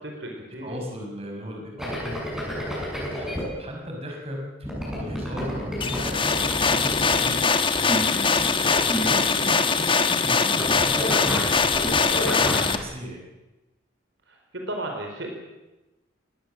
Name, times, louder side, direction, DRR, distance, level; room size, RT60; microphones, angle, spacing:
voice 1, 0.0-0.8 11.9-12.4 14.3-14.4 14.7-15.3, right 1 dB, 65° right, 2 dB, 4.2 m, -34 dB
voice 2, 0.6-6.1 6.5-7.4 7.7-13.2, equal, 30° right, 0 dB, 5.6 m, -37 dB
sound 1, 1.8-3.4 4.6-9.7 10.0-10.3 10.6-12.7, equal, 5° right, 7.1 m, -30 dB
sound 2, 5.8-12.8, left 5 dB, 25° left, 1.2 m, -22 dB
22.5 x 19.0 x 7.5 m, 1.1 s
head